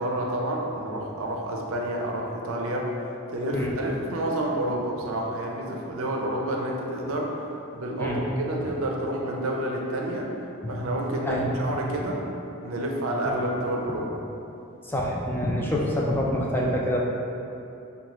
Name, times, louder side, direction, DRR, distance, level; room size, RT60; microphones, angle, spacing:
voice 1, 0.0-2.9 3.3-7.5 7.7-10.3 10.7-12.2 12.6-14.1, right 1 dB, 70° right, -1 dB, 0.5 m, -29 dB
voice 2, 14.8-17.0, equal, 10° left, -3 dB, 0.3 m, -26 dB
4.9 x 2.3 x 2.9 m, 2.8 s
head